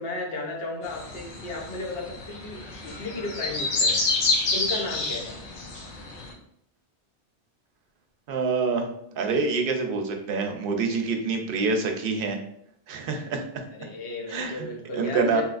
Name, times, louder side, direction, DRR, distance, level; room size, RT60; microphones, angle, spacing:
voice 1, 0.0-4.0 4.5-5.3 13.7-15.4, left 3 dB, 60° left, 0 dB, 0.9 m, -34 dB
sound 1, 0.8-6.3, left 3 dB, 85° left, 1.1 m, -28 dB
voice 2, 8.3-8.9 9.2-12.4 12.9-13.4 14.3-14.7 14.9-15.4, right 4 dB, 60° right, 3 dB, 0.6 m, -26 dB
3.1 x 2.8 x 2.4 m, 0.70 s
omnidirectional pair, 1.2 m